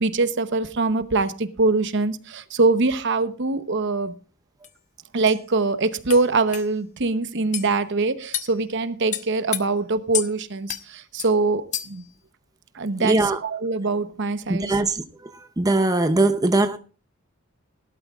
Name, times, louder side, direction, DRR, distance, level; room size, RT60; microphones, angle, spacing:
voice 1, 0.0-4.1 5.1-12.0 12.7-14.8, right 3 dB, 60° right, 0.9 m, -23 dB
sound 1, 4.6-4.7 5.3-5.4 6.1-6.2 6.5-6.7 7.5-7.7 8.3-8.5 9.1-9.6 10.1-10.3 10.7-10.8 11.2-11.3 11.7-12.0, left 11 dB, 35° left, 0.7 m, -29 dB
voice 2, 13.0-13.4 14.5-15.0 15.6-16.8, right 2 dB, 20° right, 0.6 m, -20 dB
18.0 x 12.0 x 2.4 m
head